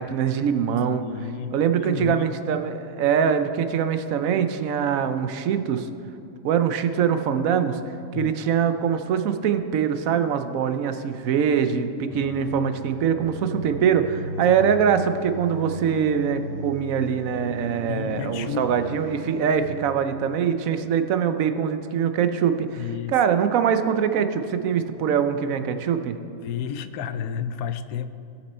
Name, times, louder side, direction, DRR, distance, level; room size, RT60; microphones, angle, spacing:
voice 1, 0.0-1.0 1.5-5.9 6.4-7.8 8.1-22.8 23.1-26.2, right 7 dB, 75° right, 9 dB, 1.0 m, -23 dB
voice 2, 1.0-1.5 1.8-2.5 8.1-8.4 11.3-11.9 12.2-12.3 17.9-18.8 22.8-23.1 26.4-28.1, left 8 dB, 90° left, 11 dB, 1.1 m, -32 dB
sound 1, 12.1-19.7, right 2 dB, 25° right, 2.7 m, -36 dB
17.5 x 6.1 x 4.3 m, 2.7 s
omnidirectional pair, 1.5 m